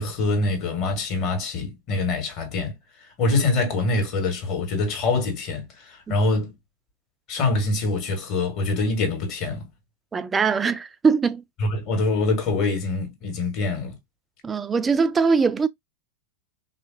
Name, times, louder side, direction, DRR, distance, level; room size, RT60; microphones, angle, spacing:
voice 1, 0.0-2.8 3.2-6.5 7.3-9.7 11.6-13.9, left 3 dB, 40° left, 1.3 m, -24 dB
voice 2, 10.1-11.4 14.4-15.7, right 5 dB, 15° right, 0.3 m, -21 dB
3.5 x 2.5 x 2.5 m
figure-of-eight pair, 90°, 0 cm